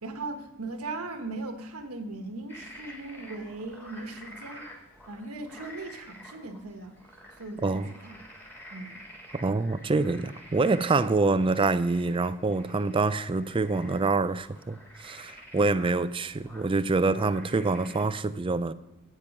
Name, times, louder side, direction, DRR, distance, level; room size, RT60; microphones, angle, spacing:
voice 1, 0.0-4.7 5.1-6.9 7.4-8.2 8.7-9.0, right 2 dB, 85° right, 1.3 m, -38 dB
sound 1, 2.5-18.0, equal, 10° left, 3.0 m, -49 dB
voice 2, 9.3-18.7, right 3 dB, 25° right, 0.4 m, -26 dB
12.0 x 9.1 x 5.3 m
head